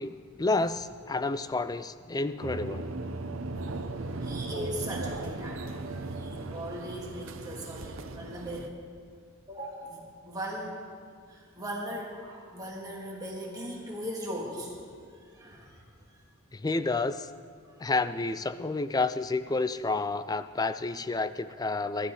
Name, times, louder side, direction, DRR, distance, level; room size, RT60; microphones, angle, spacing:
voice 1, 0.0-2.9 16.5-17.3 17.8-22.1, left 3 dB, 20° left, 13 dB, 0.4 m, -30 dB
sound 1, 2.4-8.7, right 2 dB, 65° right, 0.8 m, -37 dB
voice 2, 4.2-8.7 9.5-10.8 11.3-14.7 15.1-15.8 17.7-17.8, equal, 15° right, -3 dB, 2.2 m, -39 dB
21.5 x 12.5 x 3.9 m, 2.2 s
head